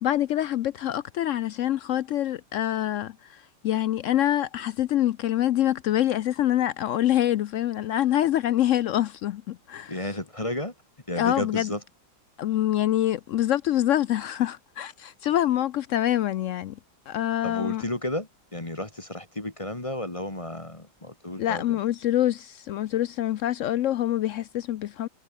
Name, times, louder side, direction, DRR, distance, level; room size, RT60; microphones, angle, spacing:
voice 1, 0.0-9.9 11.2-11.7 12.4-16.8 17.1-17.8 21.4-25.1, left 12 dB, 85° left, 0.6 m, -25 dB
voice 2, 9.9-10.7 11.1-11.8 17.4-21.8, left 1 dB, 20° left, 1.8 m, -32 dB
omnidirectional pair, 1.9 m